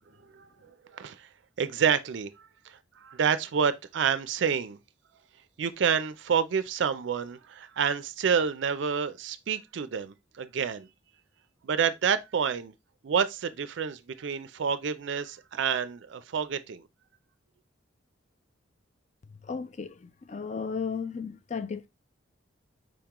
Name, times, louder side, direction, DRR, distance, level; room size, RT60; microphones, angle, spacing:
voice 1, 0.9-1.3 1.6-2.3 2.7-4.8 5.6-10.9 11.6-12.7 13.0-16.8, right 7 dB, 65° right, 0.4 m, -28 dB
voice 2, 19.4-21.9, left 5 dB, 35° left, 0.4 m, -35 dB
5.0 x 3.6 x 2.9 m
head